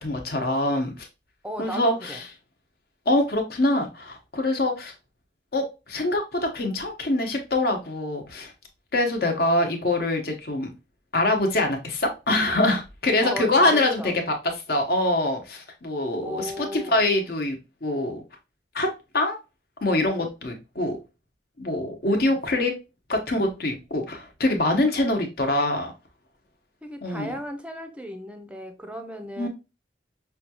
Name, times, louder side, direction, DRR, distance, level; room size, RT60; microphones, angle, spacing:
voice 1, 0.0-1.1 1.6-2.2 3.1-4.9 5.5-8.5 8.9-10.7 11.1-14.1 14.7-18.2 18.7-19.4 19.8-21.0 21.6-22.7 23.1-25.9 27.0-27.3 29.4-29.5, left 2 dB, 60° left, 0.9 m, -24 dB
voice 2, 1.4-2.2 13.2-14.1 16.2-17.0 22.1-22.4 26.8-29.5, equal, 5° right, 0.5 m, -35 dB
5.6 x 2.3 x 2.8 m
head